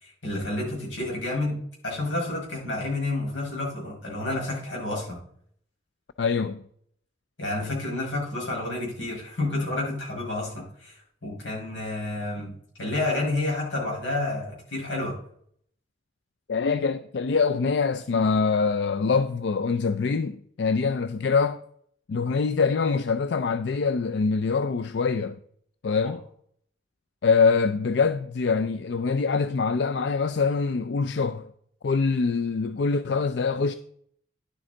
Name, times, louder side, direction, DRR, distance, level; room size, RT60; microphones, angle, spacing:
voice 1, 0.0-1.6 1.8-5.2 7.4-12.5 12.8-15.1, left 2 dB, 90° left, 4.9 m, -30 dB
voice 2, 6.2-6.6 16.5-21.6 22.1-25.4 25.8-26.2 27.2-31.5 31.8-33.7, left 5 dB, 65° left, 0.4 m, -24 dB
11.0 x 7.7 x 3.8 m
head